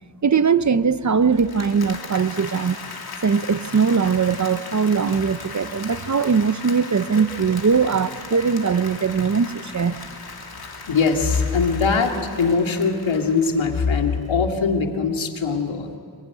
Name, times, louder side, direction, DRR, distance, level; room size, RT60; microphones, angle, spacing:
voice 1, 0.2-2.8 3.2-10.0, right 5 dB, 40° right, 14 dB, 0.7 m, -20 dB
Applause, 1.2-14.2, left 4 dB, 55° left, 2.6 m, -38 dB
voice 2, 10.9-16.0, left 5 dB, 90° left, 3 dB, 2.5 m, -21 dB
25.5 x 22.5 x 9.9 m, 2.3 s
wide cardioid pair, 130°, 45 cm